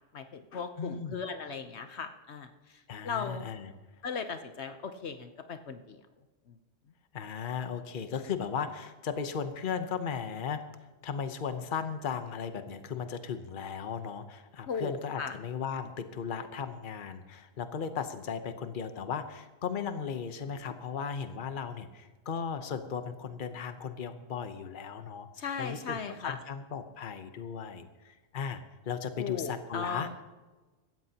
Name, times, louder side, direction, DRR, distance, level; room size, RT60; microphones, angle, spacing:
voice 1, 0.1-3.4 4.0-6.0 6.5-6.6 14.7-15.3 25.4-26.4 29.2-30.1, left 5 dB, 70° left, 8 dB, 1.1 m, -37 dB
voice 2, 0.8-1.2 2.9-3.7 7.1-10.6 11.0-25.3 25.6-28.6 28.9-30.1, left 6 dB, 50° left, 8 dB, 1.0 m, -36 dB
17.0 x 13.5 x 2.9 m, 1.2 s
omnidirectional pair, 1.2 m